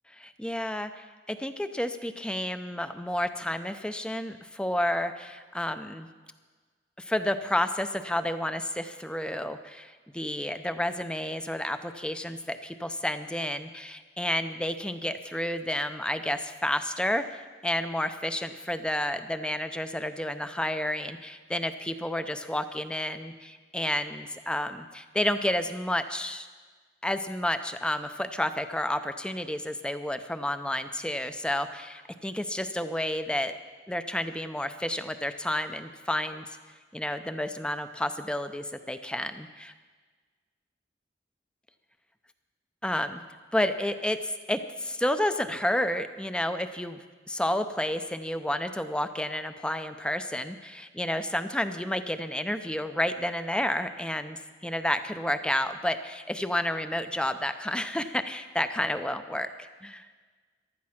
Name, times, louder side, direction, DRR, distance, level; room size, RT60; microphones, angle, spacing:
voice 1, 0.2-6.1 7.0-26.5 27.0-33.5 33.9-36.4 36.9-39.5 42.8-43.2 43.5-60.1, left 1 dB, 5° left, 9 dB, 0.5 m, -30 dB
15.0 x 12.0 x 5.8 m, 1.4 s
head